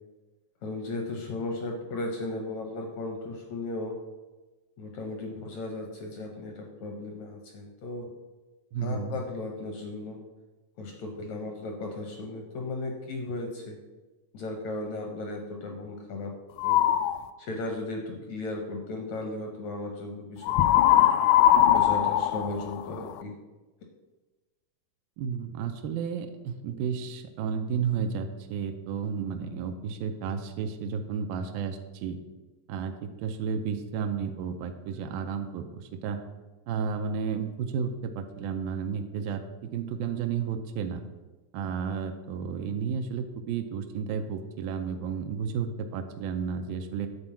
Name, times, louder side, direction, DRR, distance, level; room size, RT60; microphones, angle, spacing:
voice 1, 0.6-4.0 4.8-8.1 8.8-10.2 10.8-13.8 14.3-16.3 16.6-16.8 17.4-21.0 21.6-23.3, left 2 dB, 75° left, 2 dB, 1.7 m, -36 dB
voice 2, 8.7-9.2 25.2-32.2 32.7-36.2 36.7-41.0 41.5-47.1, right 6 dB, 85° right, 6 dB, 2.3 m, -32 dB
sound 1, 16.6-17.2 20.5-23.2, left 11 dB, 90° left, 2.4 m, -21 dB
9.7 x 4.4 x 7.3 m, 1.2 s
omnidirectional pair, 4.3 m